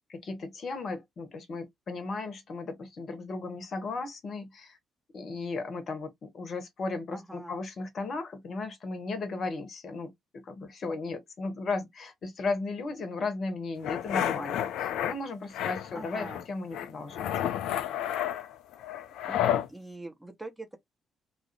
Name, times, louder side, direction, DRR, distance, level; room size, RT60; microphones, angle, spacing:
voice 1, 0.1-4.8 5.1-17.3, left 3 dB, 45° left, 0.8 m, -36 dB
voice 2, 7.1-7.6 15.9-16.4 19.2-20.8, right 2 dB, 5° right, 0.8 m, -43 dB
sound 1, 13.8-15.1 15.5-16.4 16.7-19.7, left 10 dB, 65° left, 0.3 m, -31 dB
2.3 x 2.0 x 2.8 m
figure-of-eight pair, 45°, 0 cm